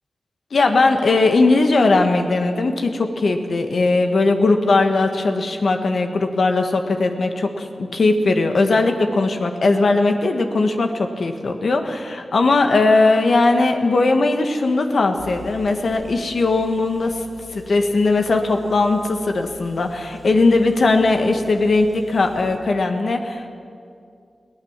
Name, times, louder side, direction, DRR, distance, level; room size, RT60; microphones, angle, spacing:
voice 1, 0.5-17.2 17.5-23.6, left 3 dB, 70° left, 5 dB, 1.6 m, -19 dB
Engine, 15.2-22.6, left 3 dB, 30° left, 4.1 m, -44 dB
22.0 x 16.5 x 7.4 m, 2.4 s
cardioid pair, 65°, 0 cm